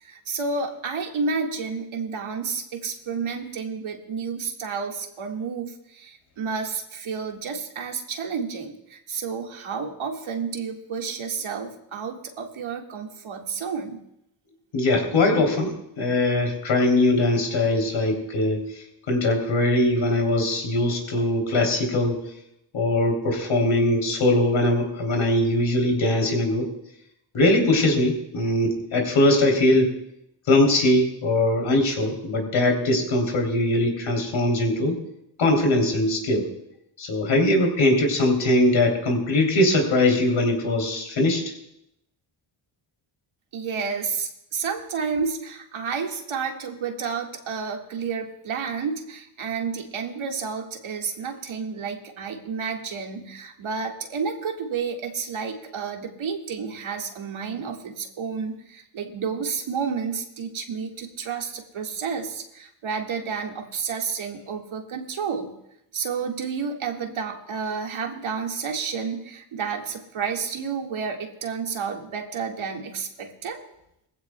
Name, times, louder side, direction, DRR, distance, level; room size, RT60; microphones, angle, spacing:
voice 1, 0.0-14.0 43.5-65.5 65.9-73.6, right 5 dB, 75° right, 2 dB, 1.9 m, -30 dB
voice 2, 14.7-18.6 19.1-22.2 22.7-26.7 27.3-29.9 30.5-35.0 35.4-36.5 37.0-41.4, left 1 dB, 70° left, 2 dB, 3.3 m, -21 dB
21.0 x 15.5 x 2.3 m, 0.80 s
cardioid pair, 80°, 48 cm